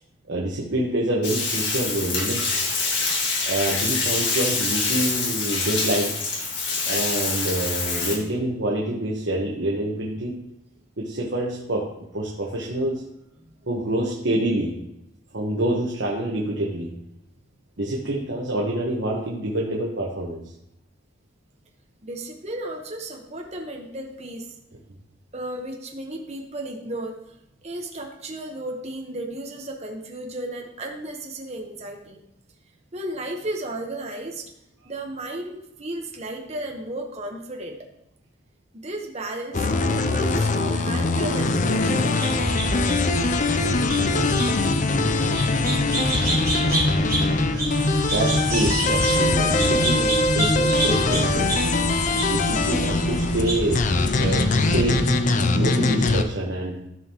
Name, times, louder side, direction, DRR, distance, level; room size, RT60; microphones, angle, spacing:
voice 1, 0.3-2.5 3.5-6.1 6.9-10.4 11.0-13.0 13.7-14.8 15.3-17.0 17.8-20.4 40.8-40.9 48.1-51.5 52.3-53.9 54.2-55.0 55.5-56.8, right 1 dB, 70° right, -2 dB, 1.2 m, -26 dB
Bathtub (filling or washing), 1.2-8.2, left 4 dB, 65° left, 1.9 m, -25 dB
voice 2, 22.0-24.5 25.3-32.2 32.9-34.4 34.8-37.9 38.7-42.6, right 1 dB, 35° right, 1 dB, 1.1 m, -34 dB
sound 1, 39.5-56.2, left 2 dB, 40° left, 0.5 m, -22 dB
sound 2, 42.2-55.1, right 1 dB, 20° right, 2.5 m, -28 dB
13.5 x 5.5 x 3.0 m, 0.84 s
head